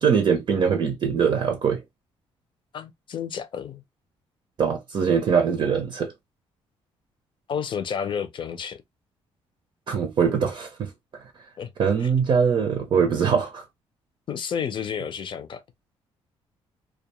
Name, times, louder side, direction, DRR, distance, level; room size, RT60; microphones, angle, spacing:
voice 1, 0.0-1.8 4.6-6.1 9.9-11.2 11.8-13.6, right 6 dB, 50° right, 0.6 m, -22 dB
voice 2, 2.7-3.8 7.5-8.8 11.6-11.7 12.0-12.1 12.6-12.7 14.3-15.6, left 7 dB, 50° left, 0.6 m, -31 dB
2.3 x 2.2 x 2.9 m
cardioid pair, 100°, 11 cm